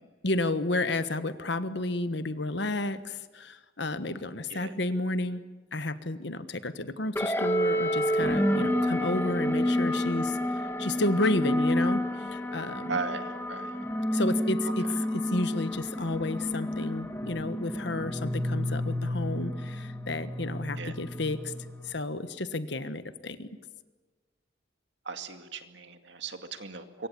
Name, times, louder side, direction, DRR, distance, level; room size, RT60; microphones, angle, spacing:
voice 1, 0.2-5.4 5.7-13.0 14.1-14.9 15.1-21.5 21.8-23.5, left 2 dB, 60° left, 12 dB, 1.4 m, -31 dB
sound 1, 7.1-21.9, equal, 10° left, 2.0 m, -29 dB
voice 2, 12.9-13.7 14.8-14.9 20.8-21.0 25.1-27.1, right 4 dB, 65° right, 7 dB, 2.2 m, -37 dB
26.0 x 23.5 x 8.7 m, 1.3 s
head